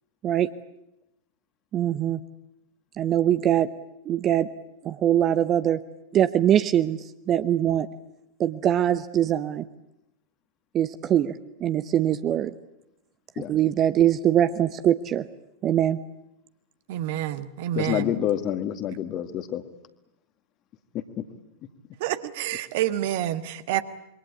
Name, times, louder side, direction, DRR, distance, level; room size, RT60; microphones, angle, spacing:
voice 1, 1.7-2.2 3.0-3.7 4.1-4.5 4.8-5.8 6.1-7.9 8.4-9.6 10.7-11.3 11.6-12.5 13.5-15.3 15.6-16.0, right 11 dB, 30° right, 12 dB, 0.9 m, -22 dB
voice 2, 16.9-18.1 22.0-23.8, right 13 dB, 50° right, 11 dB, 1.5 m, -28 dB
voice 3, 17.8-19.6 20.9-21.2, left 11 dB, 35° left, 9 dB, 2.1 m, -28 dB
27.0 x 23.0 x 8.6 m, 0.85 s
figure-of-eight pair, 90°, 0 cm